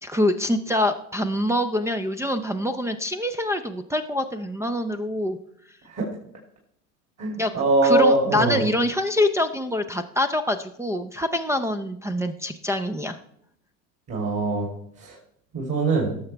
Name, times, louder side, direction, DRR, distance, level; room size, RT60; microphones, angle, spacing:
voice 1, 0.0-5.4 7.4-7.5 7.8-13.2, left 1 dB, 5° right, 3 dB, 0.4 m, -25 dB
voice 2, 7.2-8.6 14.1-14.7 15.0-15.2 15.5-16.2, right 2 dB, 35° right, -2 dB, 3.0 m, -22 dB
18.0 x 6.7 x 3.3 m, 0.70 s
hypercardioid pair, 85°, 44 cm